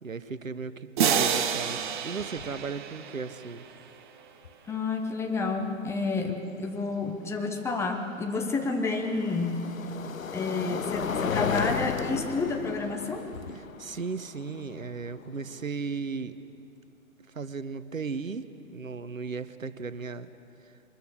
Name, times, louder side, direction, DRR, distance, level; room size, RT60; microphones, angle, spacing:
voice 1, 0.0-3.6 13.5-16.4 17.3-20.3 20.6-20.7, right 5 dB, 80° right, 13 dB, 1.0 m, -36 dB
sound 1, 1.0-3.8, right 8 dB, 35° right, 1.1 m, -29 dB
sound 2, 1.8-1.9 2.2-2.6 4.4-4.5 7.5-15.6, left 6 dB, 80° left, 0.7 m, -35 dB
voice 2, 4.7-9.7 10.3-13.3, left 3 dB, 5° left, 3 dB, 0.9 m, -30 dB
23.5 x 21.0 x 6.6 m, 2.6 s
figure-of-eight pair, 120°, 40 cm